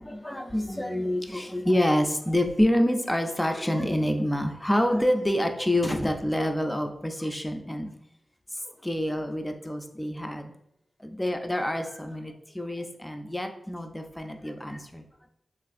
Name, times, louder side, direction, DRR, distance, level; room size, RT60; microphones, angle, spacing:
voice 1, 0.0-7.9 8.6-10.5 11.0-15.0, left 1 dB, 10° left, 5 dB, 0.3 m, -27 dB
3.2 x 2.4 x 2.4 m, 0.73 s
wide cardioid pair, 90°, 0 cm